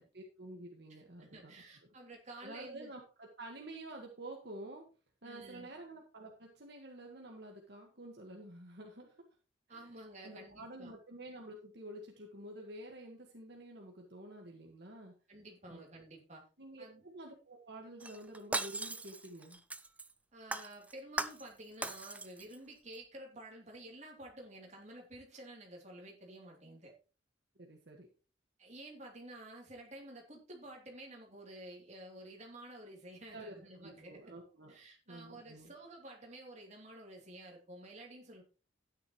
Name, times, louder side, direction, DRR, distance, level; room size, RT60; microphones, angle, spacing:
voice 1, 0.1-1.5 2.4-4.9 5.2-9.2 9.7-9.9 10.2-15.1 15.7-15.8 16.6-19.6 27.5-28.1 33.3-34.8 35.1-35.7, right 1 dB, 55° right, 1 dB, 1.6 m, -49 dB
voice 2, 0.9-2.9 5.2-5.7 9.7-10.9 15.3-16.4 16.8-17.0 20.3-26.9 28.6-34.3 34.7-38.4, right 1 dB, 35° right, 0 dB, 3.1 m, -51 dB
Shatter, 18.0-20.1 20.5-21.5 21.8-22.6 22.9-23.0, right 2 dB, 5° right, 0.4 m, -39 dB
12.0 x 9.8 x 3.1 m, 0.35 s
head